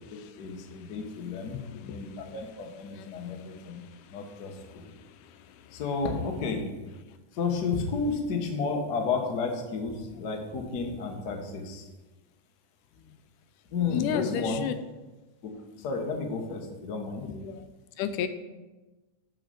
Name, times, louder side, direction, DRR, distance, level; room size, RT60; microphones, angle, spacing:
voice 1, 0.1-1.6 1.8-3.8 4.1-4.9 5.7-6.7 7.3-11.9 13.7-14.6 15.4-15.5 15.8-17.3, left 4 dB, 65° left, 2 dB, 1.0 m, -32 dB
voice 2, 1.5-2.1 2.9-3.7 4.2-4.8 13.9-14.7 17.2-17.7 18.0-18.3, left 9 dB, 85° left, 10 dB, 2.2 m, -34 dB
9.2 x 4.9 x 6.4 m, 1.1 s
omnidirectional pair, 3.6 m